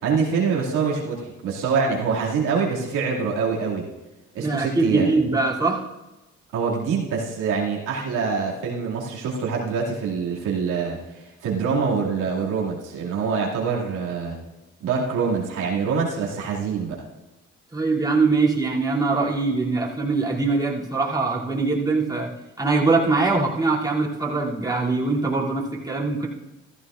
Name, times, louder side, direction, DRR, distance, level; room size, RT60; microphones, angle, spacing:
voice 1, 0.0-3.8 4.3-5.1 6.5-14.3 14.8-17.0, right 5 dB, 85° right, -4 dB, 2.4 m, -25 dB
voice 2, 4.4-5.8 17.7-22.3 22.6-26.3, right 3 dB, 15° right, -6 dB, 2.8 m, -22 dB
14.5 x 14.0 x 2.5 m, 1.0 s
cardioid pair, 90°, 30 cm